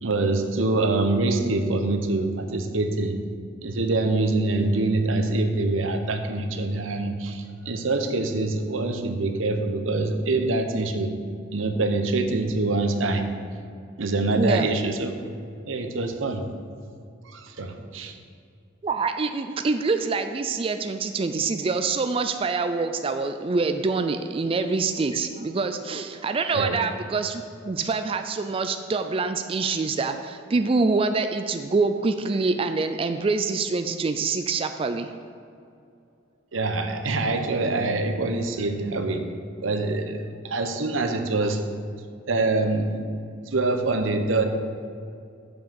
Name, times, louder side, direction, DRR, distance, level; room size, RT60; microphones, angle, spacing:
voice 1, 0.0-3.2 3.6-11.1 11.5-13.2 14.0-15.1 15.7-16.4 17.3-18.1 26.5-26.8 36.5-39.3 39.6-41.6 42.3-42.9 43.5-44.5, right 2 dB, 90° right, 6 dB, 0.9 m, -25 dB
voice 2, 14.3-14.7 18.8-35.2, right 4 dB, 30° right, 7 dB, 0.3 m, -25 dB
7.2 x 6.1 x 7.0 m, 2.5 s
head